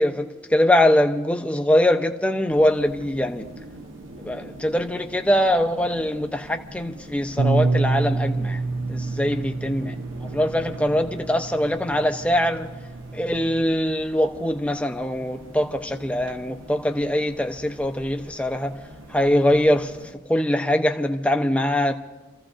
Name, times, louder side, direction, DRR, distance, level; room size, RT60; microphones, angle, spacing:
voice 1, 0.0-3.5 4.2-8.6 8.9-12.7 13.1-18.7 19.1-19.9 20.3-21.9, left 1 dB, 5° left, 0.7 m, -22 dB
sound 1, 2.5-20.1, right 1 dB, 70° right, 1.1 m, -43 dB
Bass guitar, 7.4-13.6, right 3 dB, 85° right, 0.7 m, -27 dB
30.0 x 15.0 x 2.6 m
head